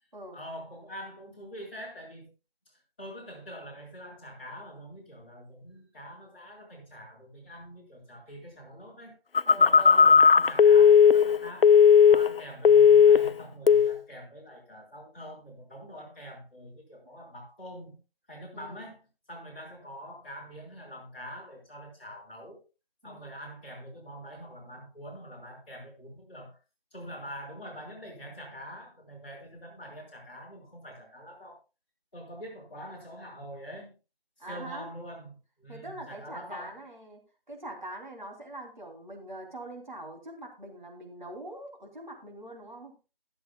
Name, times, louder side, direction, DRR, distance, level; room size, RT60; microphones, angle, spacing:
voice 1, 0.3-2.3 3.0-9.1 9.6-11.8 12.1-18.0 18.3-19.0 19.3-22.6 23.0-26.6 26.9-31.6 32.1-33.9 34.4-36.8, equal, 10° left, -11 dB, 3.8 m, -44 dB
Telephone, 9.3-12.4 12.6-13.3 13.7-14.0, left 6 dB, 70° left, 0.4 m, -17 dB
voice 2, 9.4-10.2 18.5-18.9 23.0-23.3 34.4-34.9 35.7-37.2 37.5-42.9, right 1 dB, 50° right, 1 dB, 3.1 m, -43 dB
22.0 x 7.7 x 2.3 m, 0.29 s
figure-of-eight pair, 170°, 30 cm